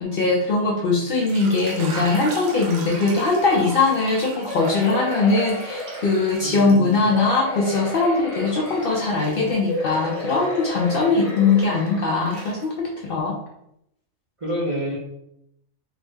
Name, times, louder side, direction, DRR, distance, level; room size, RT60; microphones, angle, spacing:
voice 1, 0.0-13.4, left 3 dB, 65° left, -2 dB, 0.5 m, -21 dB
sound 1, 1.0-7.4 7.8-11.9 12.2-13.0, right 3 dB, 75° right, 1.1 m, -39 dB
sound 2, 4.5-6.6 7.1-9.3 9.6-12.5 13.1-13.2 13.5-13.6, left 2 dB, 5° left, 0.4 m, -32 dB
voice 2, 6.4-7.1 14.4-15.0, equal, 60° right, -5 dB, 0.3 m, -28 dB
3.4 x 2.1 x 3.3 m, 0.79 s
omnidirectional pair, 1.4 m